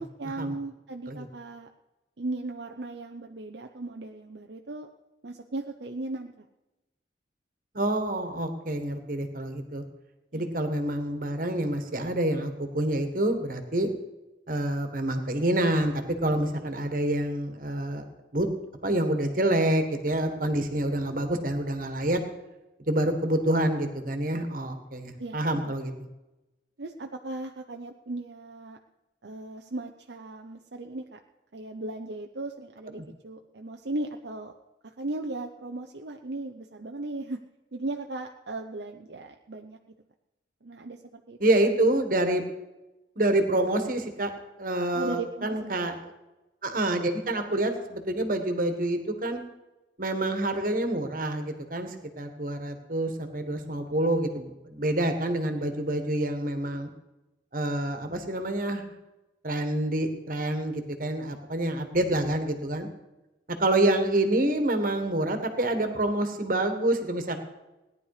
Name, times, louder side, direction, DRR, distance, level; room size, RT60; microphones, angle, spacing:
voice 1, 0.0-1.7 2.2-4.9 5.2-6.5 10.3-10.5 25.2-25.4 25.6-25.7 26.8-28.8 29.2-31.2 31.5-34.5 34.8-37.4 37.7-39.8 40.6-41.4 44.9-46.0, right 2 dB, 70° right, 3 dB, 0.7 m, -37 dB
voice 2, 7.7-9.8 10.3-13.9 14.5-18.0 18.3-18.5 18.8-22.2 22.9-25.9 41.4-42.4 43.1-44.3 44.6-46.1 46.6-49.4 50.0-56.9 57.5-58.8 59.4-62.9 63.6-67.4, right 1 dB, 50° right, 7 dB, 1.7 m, -27 dB
17.5 x 10.5 x 5.0 m, 1.0 s
head